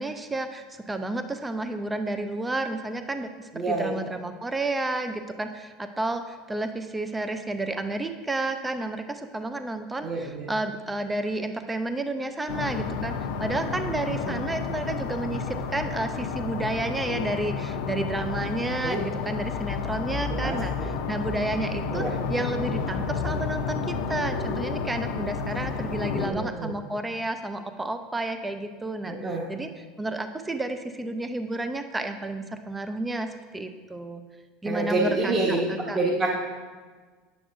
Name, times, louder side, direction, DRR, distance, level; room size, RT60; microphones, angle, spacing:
voice 1, 0.0-13.1 13.4-33.3 33.5-34.2 34.6-36.0, right 2 dB, 10° right, 8 dB, 0.4 m, -31 dB
voice 2, 3.5-3.9 10.0-10.5 14.2-14.4 18.8-19.0 20.4-20.9 21.9-22.1 26.2-26.7 29.0-29.4 34.6-36.3, right 2 dB, 30° right, -2 dB, 1.2 m, -27 dB
sound 1, 12.5-26.3, left 5 dB, 80° left, 0.7 m, -31 dB
9.9 x 7.7 x 2.6 m, 1.5 s
supercardioid pair, 135°, 0 cm